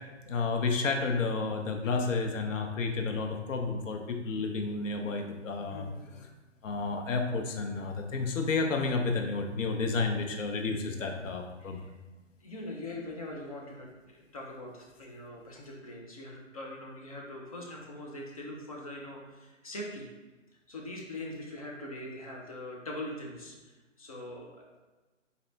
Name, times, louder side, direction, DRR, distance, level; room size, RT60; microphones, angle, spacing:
voice 1, 0.3-5.9 6.6-11.9, left 4 dB, 80° left, 4 dB, 0.7 m, -31 dB
voice 2, 5.6-6.3 11.0-11.2 11.6-11.9 12.4-20.1 20.7-24.8, left 1 dB, 30° left, -2 dB, 0.5 m, -42 dB
4.0 x 3.2 x 2.6 m, 1.2 s
hypercardioid pair, 145°, 38 cm